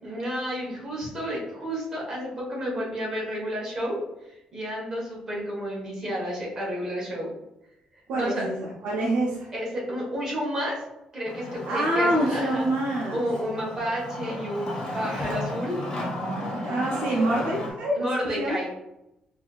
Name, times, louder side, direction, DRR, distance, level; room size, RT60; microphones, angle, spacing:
voice 1, 0.0-7.3 7.9-8.5 9.5-10.8 11.1-12.7 13.1-15.8 18.0-18.7, equal, 25° right, -4 dB, 1.2 m, -31 dB
voice 2, 8.1-9.5 11.6-13.2 16.6-18.0 18.4-18.6, right 1 dB, 80° right, -4 dB, 0.7 m, -26 dB
Wood, 11.3-17.7, left 1 dB, 40° left, 1.1 m, -34 dB
4.7 x 2.7 x 2.4 m, 0.89 s
cardioid pair, 175°, 2 cm